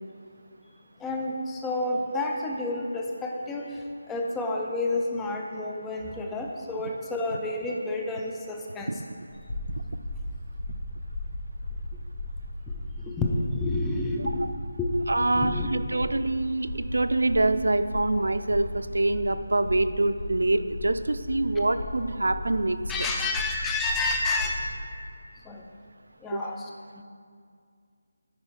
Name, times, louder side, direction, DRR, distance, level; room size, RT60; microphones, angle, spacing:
voice 1, 1.0-9.0 13.0-14.4 14.8-15.9 22.9-24.6 25.4-25.6 26.2-26.7 27.0-27.1, left 2 dB, 5° left, 0 dB, 0.4 m, -30 dB
sound 1, 9.3-24.7, left 1 dB, 30° left, 1.6 m, -36 dB
voice 2, 15.1-23.1 26.3-26.5, right 2 dB, 90° right, 11 dB, 0.4 m, -25 dB
10.5 x 4.0 x 4.5 m, 2.2 s
figure-of-eight pair, 170°, 0 cm